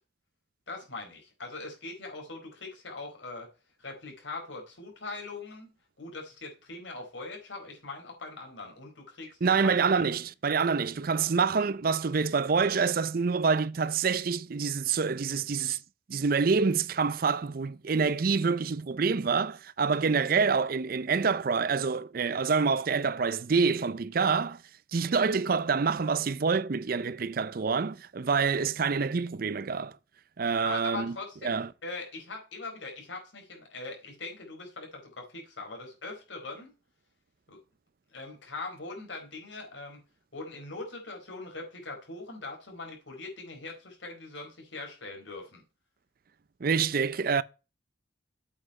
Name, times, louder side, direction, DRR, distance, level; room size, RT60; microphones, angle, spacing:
voice 1, 0.7-3.5 3.8-5.7 6.0-10.1 30.5-36.7 37.5-37.6 38.1-40.0 40.3-45.6, left 3 dB, 80° left, 4.2 m, -41 dB
voice 2, 9.4-15.8 16.1-24.6 24.9-29.9 30.4-31.2 31.4-31.7 46.6-47.4, right 5 dB, 50° right, 0.5 m, -27 dB
8.2 x 5.9 x 5.4 m
head